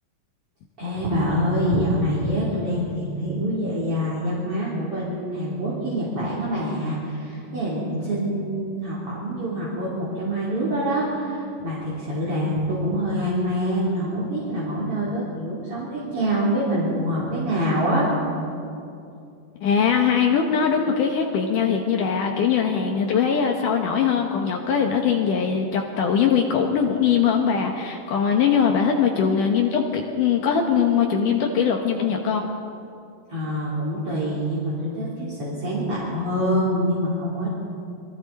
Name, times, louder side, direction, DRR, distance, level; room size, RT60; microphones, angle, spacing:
voice 1, 0.8-18.1 33.3-37.5, equal, 40° right, -7 dB, 4.2 m, -25 dB
voice 2, 19.6-32.5, left 7 dB, 70° left, 2 dB, 2.6 m, -21 dB
27.5 x 22.5 x 4.2 m, 2.5 s
omnidirectional pair, 4.1 m